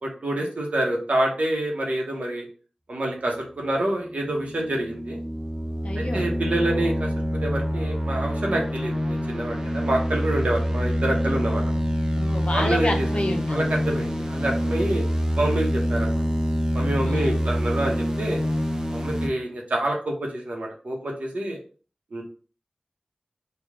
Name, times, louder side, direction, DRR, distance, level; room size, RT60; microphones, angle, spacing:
voice 1, 0.0-2.5 2.9-5.2 6.0-11.8 12.5-13.1 13.5-15.1 15.4-16.2 16.7-18.4 18.9-21.6 22.1-22.2, right 1 dB, 80° right, 0 dB, 1.0 m, -27 dB
sound 1, 4.1-19.3, equal, 25° right, 0.6 m, -26 dB
voice 2, 5.8-6.2 12.2-13.7 17.0-17.4, left 1 dB, 55° left, 3 dB, 0.7 m, -29 dB
3.4 x 2.4 x 3.6 m, 0.39 s
wide cardioid pair, 50°, 2 cm